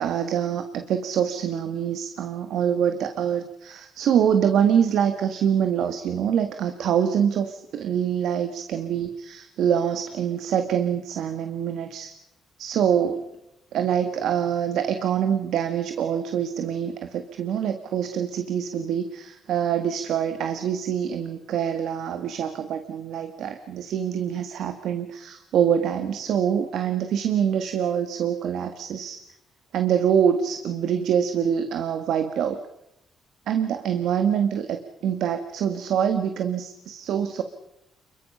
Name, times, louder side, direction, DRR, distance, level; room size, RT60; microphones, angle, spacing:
voice 1, 0.0-12.1 12.6-13.2 13.7-29.2 29.7-32.6 33.5-37.4, right 8 dB, 75° right, 8 dB, 1.7 m, -25 dB
29.0 x 22.5 x 5.6 m, 0.86 s
cardioid pair, 90°, 0 cm